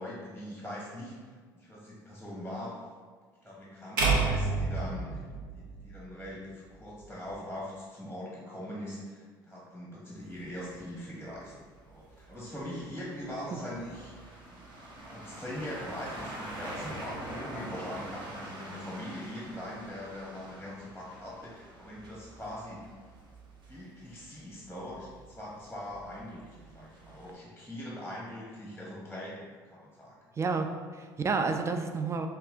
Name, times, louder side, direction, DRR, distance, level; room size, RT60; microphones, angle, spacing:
voice 1, 0.0-2.7 3.4-5.2 5.5-11.5 11.8-14.3 14.8-22.9 23.7-30.2 30.6-30.7, left 1 dB, ahead, -5 dB, 0.9 m, -42 dB
sound 1, 4.0-6.2, right 3 dB, 75° right, 0.7 m, -29 dB
sound 2, 10.2-27.3, right 1 dB, 40° right, 0.8 m, -46 dB
voice 2, 30.4-32.3, right 4 dB, 25° right, 6 dB, 0.4 m, -30 dB
5.4 x 2.3 x 2.4 m, 1.5 s
hypercardioid pair, 65°, 12 cm